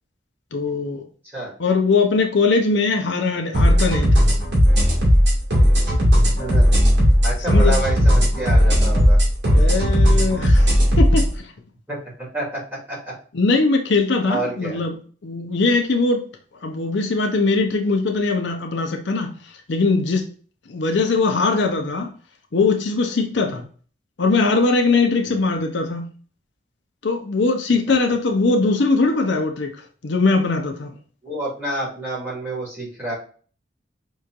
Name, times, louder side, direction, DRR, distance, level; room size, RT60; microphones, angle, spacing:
voice 1, 0.5-1.0 1.6-4.3 7.5-7.8 9.5-10.7 11.0-11.5 13.3-15.0 15.2-16.2 16.6-19.3 19.7-20.3 20.7-22.1 22.5-23.6 24.2-26.1 27.0-29.8 30.0-30.9, left 3 dB, 70° left, 0.6 m, -20 dB
sound 1, 3.5-11.3, equal, 60° right, 2.0 m, -16 dB
voice 2, 6.4-6.7 7.2-9.2 11.9-13.1 14.3-14.8 23.5-23.6 25.2-25.4 31.2-33.1, right 1 dB, 10° right, 2.2 m, -29 dB
5.4 x 3.1 x 2.4 m
head